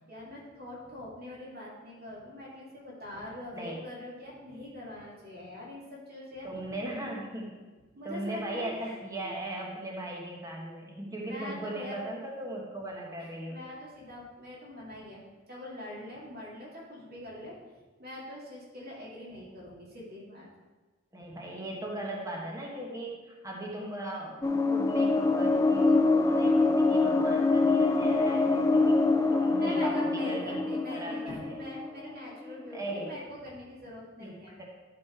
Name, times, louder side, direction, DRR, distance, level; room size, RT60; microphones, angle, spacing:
voice 1, 0.1-6.7 7.9-9.0 11.3-12.0 13.2-17.5 18.0-20.5 21.3-21.4 29.6-34.6, left 1 dB, 50° right, -5 dB, 2.4 m, -43 dB
voice 2, 3.5-3.8 6.4-7.6 8.0-13.6 21.1-29.0 29.3-31.5 32.7-33.1 34.2-34.6, right 1 dB, 15° right, -2 dB, 1.2 m, -38 dB
sound 1, 24.4-32.5, left 3 dB, 15° left, 0.4 m, -25 dB
12.0 x 4.3 x 4.5 m, 1.3 s
head